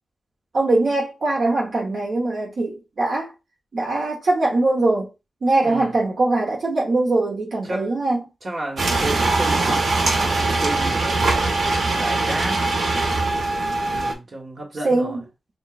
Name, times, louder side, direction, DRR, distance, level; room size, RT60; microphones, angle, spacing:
voice 1, 0.5-3.3 3.7-5.1 5.4-8.2 14.8-15.2, right 2 dB, 60° right, 1.0 m, -21 dB
voice 2, 5.6-6.0 7.6-7.9 8.4-9.9 10.2-12.7 13.8-15.3, right 2 dB, 40° right, 1.3 m, -32 dB
sound 1, 8.8-14.1, right 3 dB, 85° right, 1.1 m, -21 dB
6.8 x 2.4 x 2.4 m
wide cardioid pair, 145°, 0 cm